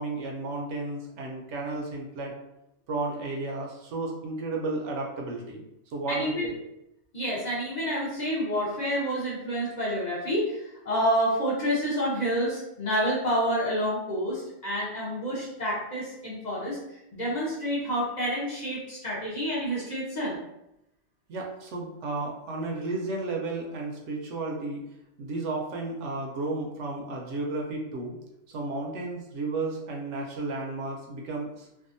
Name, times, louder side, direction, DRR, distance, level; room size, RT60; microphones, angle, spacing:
voice 1, 0.0-2.3 2.9-6.5 21.3-24.8 25.2-28.2 28.5-31.7, right 2 dB, 75° right, 0 dB, 0.9 m, -33 dB
voice 2, 6.1-6.5 7.1-16.8 17.1-20.4, equal, 40° left, -7 dB, 0.8 m, -28 dB
2.7 x 2.3 x 2.5 m, 0.85 s
omnidirectional pair, 1.3 m